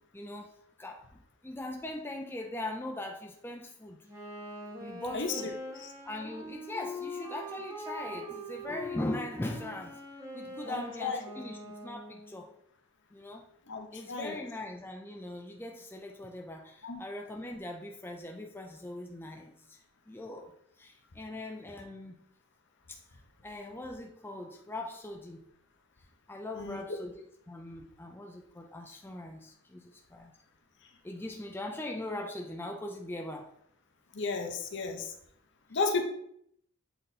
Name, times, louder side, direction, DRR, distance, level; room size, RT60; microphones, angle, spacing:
voice 1, 0.1-0.5 0.8-4.0 4.8-5.5 6.0-10.0 10.3-12.5 13.1-13.4 13.9-19.8 20.1-20.5 20.8-22.2 22.9-23.0 23.4-25.4 26.3-30.3 31.0-33.5, left 1 dB, 10° left, 2 dB, 0.5 m, -40 dB
Wind instrument woodwind instrument, 4.0-12.4, left 1 dB, 15° right, 2.2 m, -42 dB
voice 2, 10.7-11.2 13.7-14.4 16.8-17.0 26.6-26.8 34.1-35.1 35.7-36.0, left 4 dB, 55° left, 4 dB, 0.9 m, -33 dB
7.8 x 4.0 x 4.2 m, 0.71 s
head